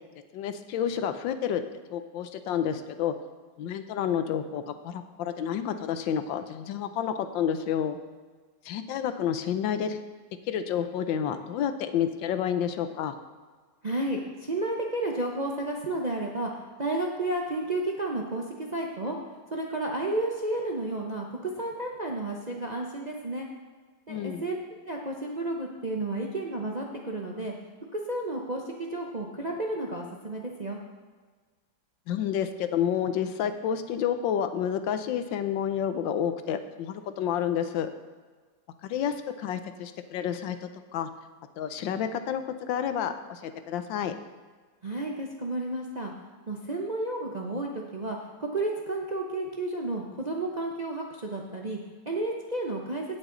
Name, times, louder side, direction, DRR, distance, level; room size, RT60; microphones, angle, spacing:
voice 1, 0.3-1.6 1.9-3.1 3.6-8.0 8.6-10.0 10.5-13.1 24.1-24.4 32.1-37.9 38.8-40.6 40.9-41.1 41.6-44.1, left 9 dB, 85° left, 10 dB, 1.4 m, -29 dB
voice 2, 13.8-16.5 16.8-18.4 18.7-19.2 19.5-23.5 24.1-24.6 24.8-27.5 27.9-30.8 44.8-46.1 46.5-51.8 52.1-53.0, right 2 dB, 40° right, 0 dB, 0.6 m, -32 dB
17.0 x 6.1 x 3.8 m, 1.5 s
omnidirectional pair, 2.0 m